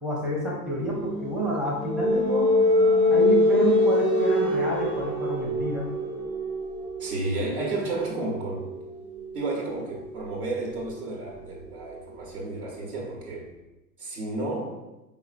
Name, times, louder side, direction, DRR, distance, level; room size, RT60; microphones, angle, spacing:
voice 1, 0.0-2.5 3.1-5.9, right 1 dB, ahead, -5 dB, 0.6 m, -29 dB
sound 1, 1.0-12.5, left 1 dB, 35° right, 1.0 m, -26 dB
voice 2, 7.0-8.7 9.3-13.5 14.0-14.8, right 2 dB, 70° right, -2 dB, 1.2 m, -32 dB
4.8 x 3.6 x 2.5 m, 1.0 s
hypercardioid pair, 115°, 49 cm